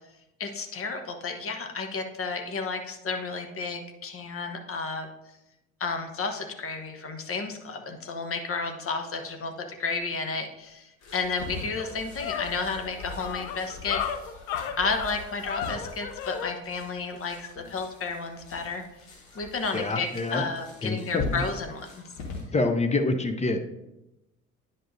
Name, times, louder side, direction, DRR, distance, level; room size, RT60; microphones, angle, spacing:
voice 1, 0.4-5.1 5.8-14.0 14.8-18.8 19.3-22.0, left 4 dB, 35° left, 5 dB, 1.1 m, -32 dB
sound 1, 11.0-22.4, left 3 dB, 75° left, 1.7 m, -42 dB
sound 2, 11.1-11.2 11.6-16.5, left 8 dB, 60° left, 0.7 m, -34 dB
voice 2, 19.7-20.4 20.8-21.4 22.5-23.6, left 2 dB, 15° left, 6 dB, 0.7 m, -26 dB
10.0 x 5.4 x 2.7 m, 0.94 s
figure-of-eight pair, 60°, 40 cm